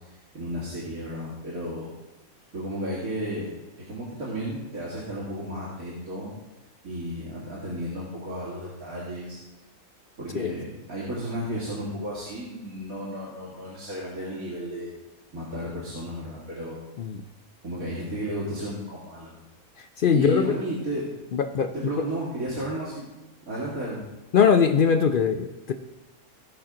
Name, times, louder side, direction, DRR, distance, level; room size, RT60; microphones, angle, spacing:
voice 1, 0.1-1.9 2.5-6.3 6.8-9.4 10.2-14.9 15.3-16.8 17.6-19.4 20.1-21.1 21.7-23.1 23.5-24.1, equal, 75° right, -8 dB, 2.7 m, -33 dB
voice 2, 20.0-20.6 21.3-21.7 24.3-25.7, left 6 dB, 65° left, 7 dB, 0.5 m, -21 dB
17.0 x 5.8 x 3.7 m, 1.1 s
omnidirectional pair, 1.5 m